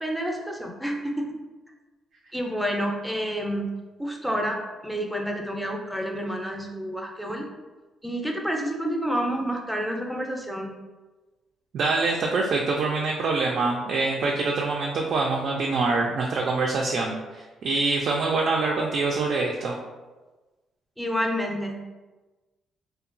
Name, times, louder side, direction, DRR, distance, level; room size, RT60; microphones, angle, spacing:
voice 1, 0.0-1.3 2.3-3.7 4.0-4.6 4.8-7.5 8.0-10.7 21.0-21.8, equal, ahead, 1 dB, 0.5 m, -29 dB
voice 2, 11.7-19.8, right 3 dB, 65° right, -1 dB, 0.3 m, -25 dB
2.8 x 2.2 x 2.5 m, 1.2 s
cardioid pair, 90°, 0 cm